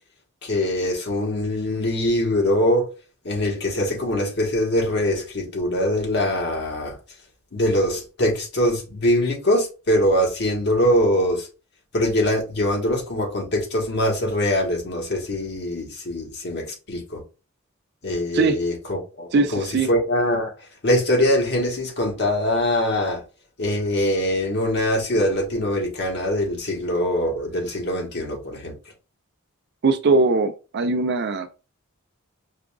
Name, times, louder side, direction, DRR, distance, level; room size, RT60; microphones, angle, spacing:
voice 1, 0.4-2.9 3.2-7.0 7.5-11.5 11.9-17.2 18.0-20.5 20.8-23.2 23.6-28.7, left 1 dB, 55° left, 1.2 m, -23 dB
voice 2, 19.3-19.9 29.8-31.5, right 3 dB, 55° right, 0.5 m, -20 dB
4.9 x 2.4 x 2.3 m
head